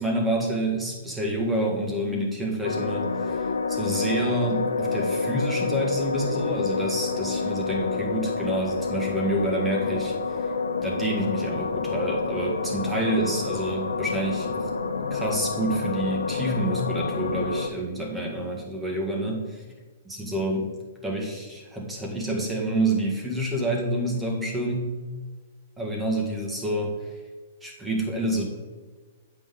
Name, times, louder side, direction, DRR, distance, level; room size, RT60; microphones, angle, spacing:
voice 1, 0.0-10.1 10.8-14.7 15.1-19.4 20.1-20.7 21.0-24.9 25.8-26.9 27.6-28.5, right 1 dB, 10° right, -1 dB, 1.9 m, -28 dB
sound 1, 2.6-17.7, left 4 dB, 90° left, 0.6 m, -28 dB
8.3 x 5.8 x 3.8 m, 1.4 s
hypercardioid pair, 120°, 0 cm